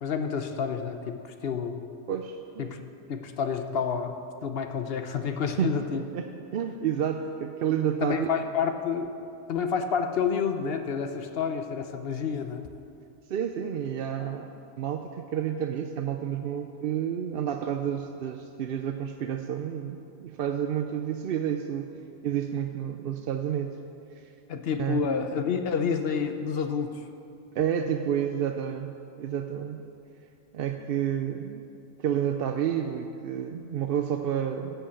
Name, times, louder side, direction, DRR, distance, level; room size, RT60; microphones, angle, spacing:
voice 1, 0.0-1.9 2.6-2.8 3.1-4.1 4.4-6.0 8.0-9.1 9.5-12.7 24.5-27.0, left 6 dB, 65° left, 7 dB, 0.9 m, -29 dB
voice 2, 2.1-2.7 5.6-8.3 13.3-14.5 14.8-21.9 22.2-23.7 24.1-24.3 24.8-25.0 27.6-29.8 30.5-31.7 32.0-34.8, right 9 dB, 65° right, 5 dB, 0.7 m, -30 dB
13.5 x 5.8 x 8.4 m, 2.6 s
omnidirectional pair, 1.1 m